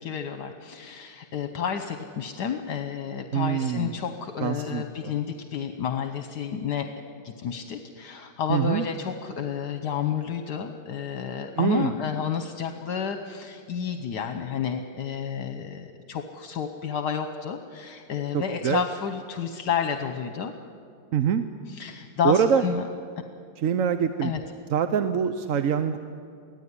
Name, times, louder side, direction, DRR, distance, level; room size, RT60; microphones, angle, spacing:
voice 1, 0.0-6.9 7.2-20.5 21.7-22.8 24.2-24.4, left 7 dB, 70° left, 7 dB, 1.6 m, -30 dB
voice 2, 3.3-3.9 4.4-5.1 8.5-8.9 11.6-11.9 18.3-18.8 21.1-21.4 22.2-22.6 23.6-24.3 24.7-26.0, right 8 dB, 60° right, 9 dB, 1.0 m, -24 dB
23.5 x 16.5 x 9.7 m, 2.3 s
omnidirectional pair, 1.9 m